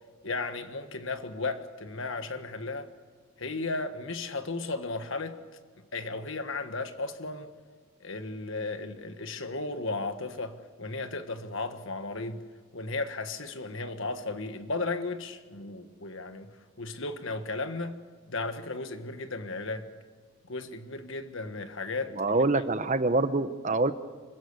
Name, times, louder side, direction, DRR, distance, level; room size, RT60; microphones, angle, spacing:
voice 1, 0.2-2.9 3.4-5.4 5.9-7.5 8.0-12.4 12.7-16.5 16.8-18.0 18.3-19.9 20.5-22.4, left 3 dB, 55° left, 1.5 m, -35 dB
voice 2, 22.2-23.9, right 2 dB, 35° right, 0.9 m, -25 dB
26.0 x 15.5 x 8.3 m
head